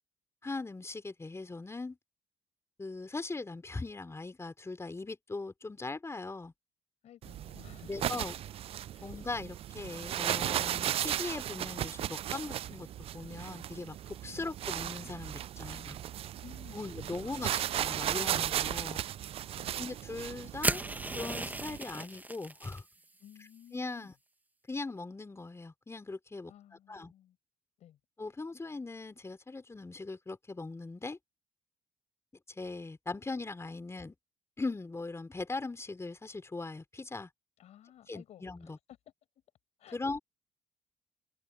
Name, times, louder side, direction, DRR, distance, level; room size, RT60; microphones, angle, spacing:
voice 1, 0.4-2.0 2.8-6.5 7.9-8.4 9.0-12.9 13.1-16.0 16.7-19.0 19.8-20.8 21.1-22.8 23.7-24.1 24.7-26.5 26.9-27.1 28.2-31.2 32.5-34.1 34.6-37.3 38.1-38.8 39.9-40.2, left 3 dB, 20° left, 4.1 m, -40 dB
voice 2, 7.0-8.1 8.9-9.1 14.3-14.5 16.4-16.9 17.3-17.4 19.5-19.9 23.2-24.1 26.4-27.4 27.8-28.0 37.6-38.8 39.8-40.0, left 11 dB, 65° left, 5.6 m, -55 dB
sound 1, 7.2-21.8, right 11 dB, 55° right, 0.4 m, -36 dB
sound 2, 20.6-22.8, right 2 dB, 15° right, 1.2 m, -35 dB
supercardioid pair, 60°, 12 cm